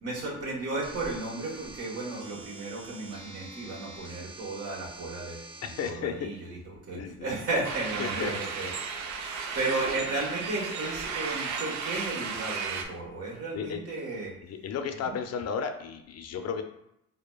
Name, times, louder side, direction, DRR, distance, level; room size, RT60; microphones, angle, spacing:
voice 1, 0.0-5.5 5.8-6.6 6.9-8.7 9.2-14.3 15.0-15.1, right 2 dB, 55° right, -4 dB, 1.3 m, -34 dB
sound 1, 0.8-5.9, right 2 dB, 15° right, 0.6 m, -46 dB
voice 2, 5.6-6.3 6.9-7.3 8.0-8.3 13.5-13.8 14.4-16.6, left 7 dB, 55° left, 7 dB, 0.5 m, -33 dB
sound 2, 7.6-12.8, right 5 dB, 70° right, 0.5 m, -34 dB
4.9 x 2.1 x 2.3 m, 0.80 s
cardioid pair, 90°, 30 cm